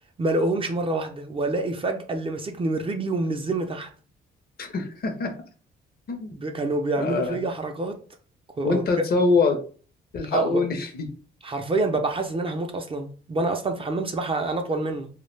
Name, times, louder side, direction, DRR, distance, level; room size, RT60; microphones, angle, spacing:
voice 1, 0.2-3.9 6.3-7.9 8.6-8.8 10.3-10.6 11.4-15.1, right 2 dB, 25° right, 0.4 m, -27 dB
voice 2, 4.6-5.3 6.1-6.4 7.0-7.4 8.6-9.6 10.1-11.1, left 3 dB, 50° left, 0.6 m, -24 dB
2.2 x 2.1 x 3.1 m
cardioid pair, 90°, 20 cm